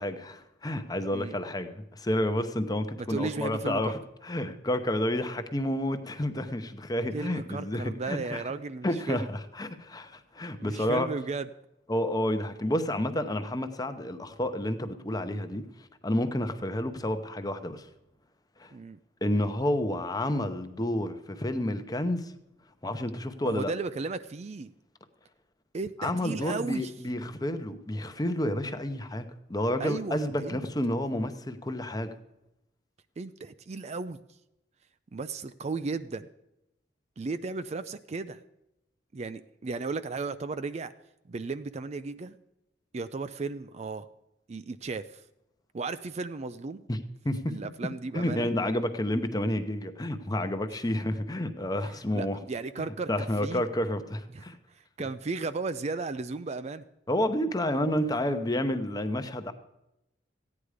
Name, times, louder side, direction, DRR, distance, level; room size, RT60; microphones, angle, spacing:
voice 1, 0.0-8.4 8.8-11.1 11.9-15.6 16.0-17.9 18.6-18.7 19.2-22.3 22.8-23.7 26.0-32.1 46.9-47.5 48.1-52.4 53.1-54.6 57.1-59.5, left 1 dB, 20° left, 9 dB, 0.8 m, -30 dB
voice 2, 3.0-4.0 6.3-6.4 7.1-9.3 10.6-11.5 18.7-19.0 23.4-24.7 25.7-26.9 29.8-30.6 33.2-34.2 35.1-36.3 37.2-38.4 39.1-40.9 41.3-42.4 42.9-44.1 44.5-45.2 45.7-46.9 47.5-48.5 50.7-50.8 51.7-53.6 54.3-56.8, right 3 dB, 35° right, 12 dB, 0.4 m, -35 dB
15.0 x 9.6 x 4.9 m, 0.88 s
head